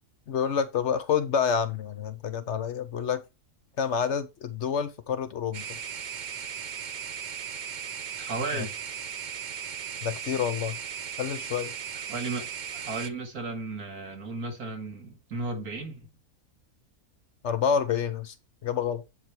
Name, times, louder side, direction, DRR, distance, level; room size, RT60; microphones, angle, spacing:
voice 1, 0.3-3.2 3.8-5.8 8.5-8.7 10.0-10.8 11.2-11.7 17.4-18.4 18.6-19.0, left 7 dB, 60° left, 1.0 m, -28 dB
sound 1, 5.5-13.1, right 8 dB, 55° right, 0.5 m, -37 dB
voice 2, 8.1-8.7 12.1-16.1, right 3 dB, 85° right, 2.5 m, -35 dB
8.1 x 5.0 x 4.5 m
omnidirectional pair, 1.5 m